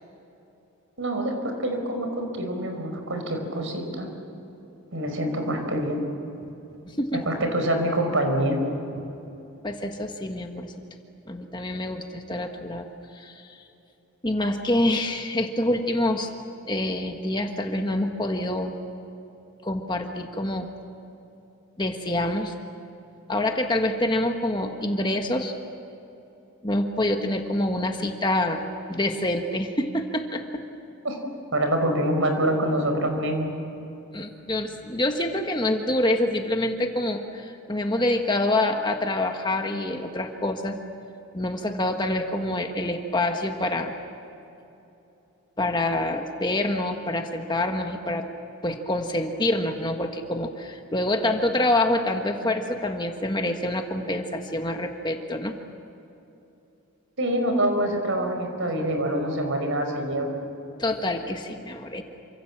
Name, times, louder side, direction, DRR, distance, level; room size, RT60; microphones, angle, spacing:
voice 1, 1.0-1.3 1.6-4.1 4.9-6.0 7.2-8.6 31.0-31.2 31.5-33.5 57.2-60.3, right 1 dB, 65° right, 5 dB, 5.2 m, -25 dB
voice 2, 9.6-10.7 11.3-12.9 13.1-13.6 14.2-16.3 16.7-18.7 19.6-20.7 21.8-22.5 23.3-25.5 26.6-28.6 28.9-30.6 34.1-40.8 41.3-43.9 45.6-48.3 48.6-55.5 60.8-62.0, left 1 dB, 20° left, 4 dB, 1.5 m, -26 dB
28.5 x 26.0 x 7.5 m, 2.9 s
head